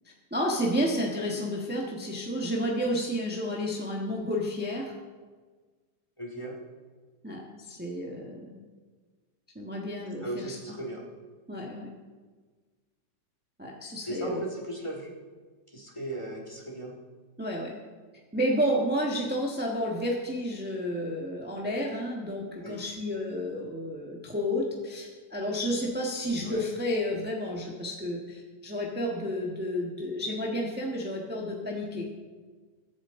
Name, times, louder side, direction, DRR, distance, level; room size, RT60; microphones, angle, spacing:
voice 1, 0.3-4.9 7.2-8.5 9.5-10.5 11.5-11.9 13.6-14.4 17.4-17.7 18.3-32.1, equal, 5° right, -2 dB, 1.4 m, -31 dB
voice 2, 6.2-6.6 10.2-11.0 14.1-15.1 15.7-16.9 22.6-22.9 26.4-26.6, right 1 dB, 20° left, -1 dB, 1.9 m, -37 dB
22.0 x 8.8 x 3.8 m, 1.4 s
omnidirectional pair, 1.8 m